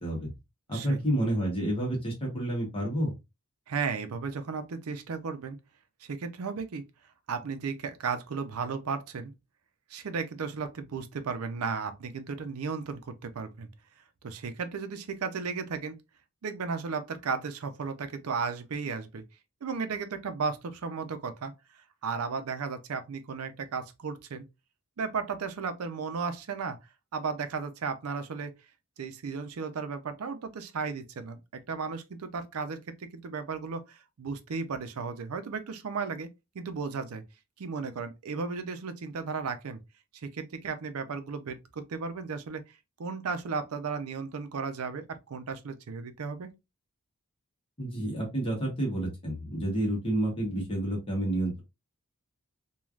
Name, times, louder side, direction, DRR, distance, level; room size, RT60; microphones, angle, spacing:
voice 1, 0.7-3.1 47.8-51.6, right 1 dB, 25° left, 1.0 m, -29 dB
voice 2, 3.7-5.6 6.0-6.8 7.3-9.3 9.9-13.7 14.2-15.9 16.4-19.2 19.6-24.4 25.0-26.8 27.1-28.5 29.0-36.3 36.5-37.2 37.6-39.8 40.2-42.6 43.0-46.5, right 5 dB, 75° right, 0.5 m, -35 dB
3.2 x 2.3 x 2.3 m
head